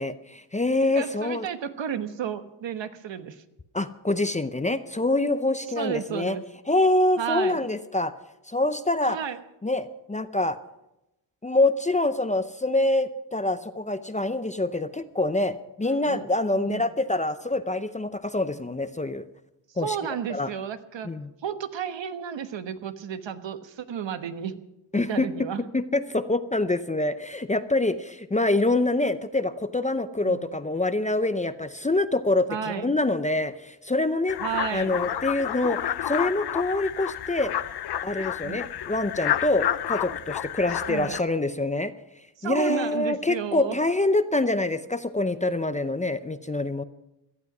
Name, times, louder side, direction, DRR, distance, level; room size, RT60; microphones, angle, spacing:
voice 1, 0.0-1.5 3.7-6.4 6.7-8.1 8.5-9.2 9.6-10.6 11.4-19.2 19.8-20.0 20.3-20.5 21.0-21.3 24.9-25.3 25.7-34.4 34.7-37.5 38.0-41.9 42.4-46.8, left 2 dB, 15° left, 11 dB, 0.6 m, -25 dB
voice 2, 0.9-3.4 5.8-6.4 7.2-7.6 9.1-9.4 16.0-16.3 16.5-16.8 19.8-21.1 21.4-24.6 24.9-25.6 30.2-30.5 32.5-33.0 34.4-35.0 38.4-38.6 40.8-41.2 42.4-43.8, right 8 dB, 65° right, 10 dB, 1.2 m, -32 dB
sound 1, 34.3-41.2, left 11 dB, 55° left, 0.7 m, -30 dB
17.5 x 12.5 x 6.0 m, 0.91 s
cardioid pair, 110°, 47 cm